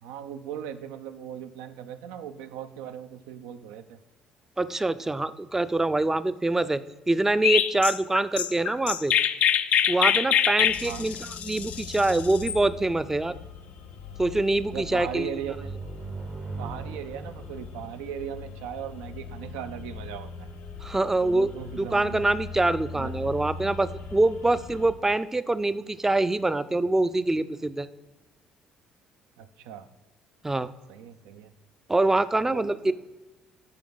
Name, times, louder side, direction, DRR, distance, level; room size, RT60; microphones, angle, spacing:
voice 1, 0.0-4.0 10.8-11.1 14.7-15.7 16.6-20.5 21.2-22.2 22.9-23.3 29.4-29.9 30.9-31.5 32.5-32.9, right 9 dB, 85° right, 10 dB, 0.5 m, -38 dB
voice 2, 4.6-6.8 7.1-9.1 9.9-11.2 11.4-13.4 14.2-15.3 20.8-21.5 21.8-27.9 30.4-30.7 31.9-32.9, right 2 dB, 15° right, 14 dB, 0.4 m, -25 dB
Chirp tweet, 7.4-12.6, left 9 dB, 60° left, 0.4 m, -24 dB
sound 1, 10.6-24.9, left 4 dB, 80° left, 0.9 m, -41 dB
sound 2, 15.4-19.0, right 4 dB, 45° right, 0.8 m, -39 dB
8.7 x 4.7 x 3.9 m, 1.1 s
hypercardioid pair, 60°, 3 cm